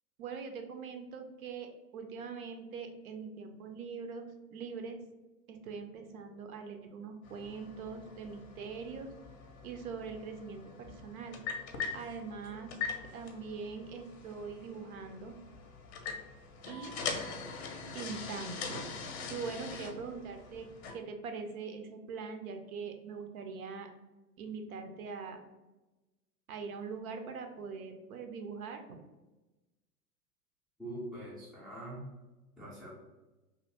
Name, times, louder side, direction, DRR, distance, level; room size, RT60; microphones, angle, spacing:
voice 1, 0.2-5.0 5.5-9.1 9.6-11.4 11.9-12.7 13.1-15.4 16.7-16.9 17.9-18.9 19.3-20.7 20.9-23.9 24.4-25.4 26.5-29.0, right 5 dB, 60° right, 5 dB, 0.6 m, -42 dB
sound 1, 7.2-20.9, left 5 dB, 40° left, 0.6 m, -43 dB
voice 2, 30.8-32.0 32.6-32.9, right 1 dB, ahead, -9 dB, 0.4 m, -43 dB
2.7 x 2.4 x 3.3 m, 1.1 s
hypercardioid pair, 110°, 48 cm